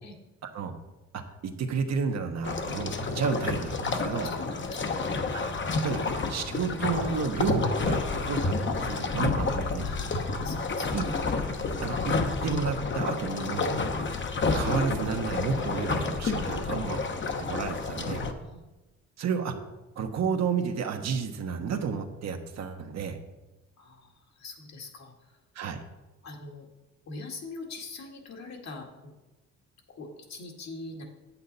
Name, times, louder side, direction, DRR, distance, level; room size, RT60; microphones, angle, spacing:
voice 1, 0.4-0.7 1.1-4.3 5.3-5.4 5.8-6.0 6.3-9.9 10.9-11.1 11.8-12.2 12.4-13.7 14.5-17.0 17.4-18.2 19.2-19.5 20.0-23.2 25.5-25.8, right 6 dB, 60° right, 5 dB, 1.1 m, -31 dB
sound 1, 2.4-18.3, left 3 dB, 40° left, 1.0 m, -30 dB
voice 2, 4.2-5.3 9.8-11.3 18.4-18.6 23.8-25.4 26.2-26.7 27.1-29.1 30.0-31.0, left 3 dB, 65° left, 1 dB, 2.0 m, -43 dB
8.7 x 8.5 x 4.1 m, 1.1 s
cardioid pair, 90°, 30 cm